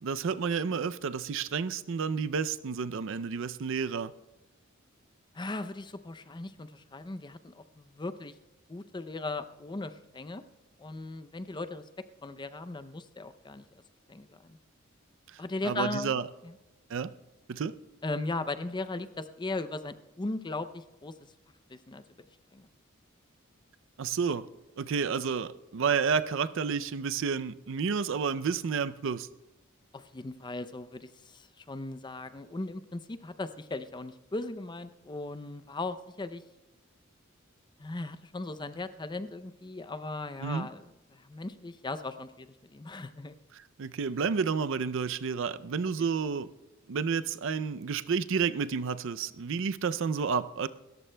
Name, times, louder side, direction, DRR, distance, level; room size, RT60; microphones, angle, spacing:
voice 1, 0.0-4.1 15.3-16.3 16.9-17.1 17.5-17.8 24.0-24.5 24.8-29.3 40.4-40.7 43.8-46.5 46.9-50.7, right 6 dB, 65° right, 0.5 m, -30 dB
voice 2, 5.3-8.3 8.7-10.4 10.8-11.8 12.2-13.8 14.1-14.6 15.4-16.5 18.0-21.1 21.7-22.0 22.5-22.7 29.9-36.4 37.8-43.3, left 2 dB, 20° left, 0.5 m, -38 dB
28.0 x 14.0 x 2.2 m
head